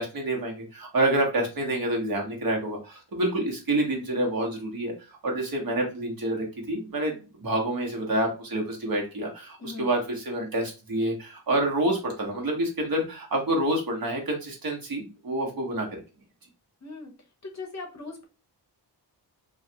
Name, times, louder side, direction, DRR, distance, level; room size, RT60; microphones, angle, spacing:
voice 1, 0.0-15.9, right 1 dB, 55° right, 0 dB, 1.1 m, -28 dB
voice 2, 9.6-9.9 16.8-17.1 17.4-18.3, left 3 dB, 40° left, 2 dB, 0.7 m, -39 dB
3.1 x 2.4 x 2.8 m, 0.32 s
wide cardioid pair, 115°, 42 cm